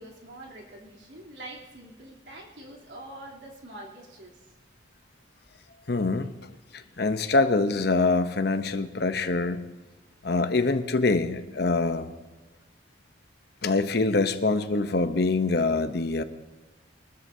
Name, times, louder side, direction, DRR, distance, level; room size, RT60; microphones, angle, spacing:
voice 1, 0.0-4.4, right 1 dB, 65° right, -2 dB, 3.2 m, -45 dB
voice 2, 5.9-6.3 6.7-9.6 10.2-12.1 13.6-16.2, left 3 dB, 55° left, 9 dB, 0.8 m, -24 dB
23.5 x 13.5 x 2.8 m, 1.2 s
head